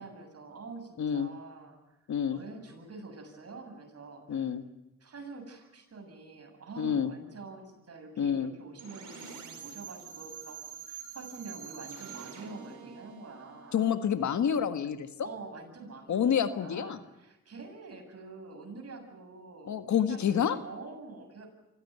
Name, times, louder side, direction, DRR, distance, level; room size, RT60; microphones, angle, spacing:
voice 1, 0.0-1.8 2.2-4.5 5.0-13.9 15.2-21.5, right 3 dB, 55° right, 4 dB, 7.4 m, -46 dB
voice 2, 1.0-1.3 2.1-2.4 4.3-4.6 6.8-7.1 8.2-8.5 13.7-15.1 16.1-17.0 19.7-20.6, left 8 dB, 75° left, 10 dB, 1.7 m, -28 dB
sound 1, 8.8-14.6, right 7 dB, 85° right, 4.8 m, -46 dB
25.5 x 16.0 x 9.4 m, 0.97 s
cardioid pair, 70°, 30 cm